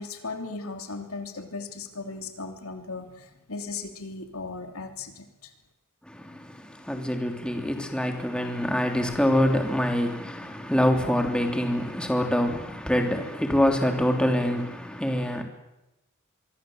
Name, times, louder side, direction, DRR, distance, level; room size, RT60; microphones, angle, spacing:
voice 1, 0.0-5.5, left 3 dB, 90° left, 3.0 m, -37 dB
voice 2, 6.0-15.4, equal, 5° left, 3.2 m, -25 dB
24.5 x 24.0 x 7.9 m
head